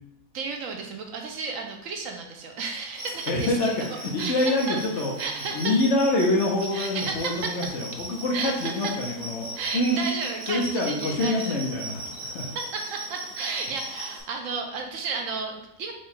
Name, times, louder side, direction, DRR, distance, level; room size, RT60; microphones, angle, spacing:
voice 1, 0.3-3.8 4.2-4.8 5.2-5.8 6.7-7.8 8.3-9.0 9.5-11.6 12.7-15.9, right 4 dB, 70° right, 3 dB, 1.0 m, -33 dB
sound 1, 2.9-14.2, right 1 dB, 40° right, 1.1 m, -38 dB
voice 2, 3.3-3.7 4.1-5.1 5.5-9.5 9.7-10.0 10.5-12.4, left 2 dB, 60° left, -1 dB, 1.1 m, -25 dB
4.7 x 2.3 x 4.3 m, 0.80 s
omnidirectional pair, 1.5 m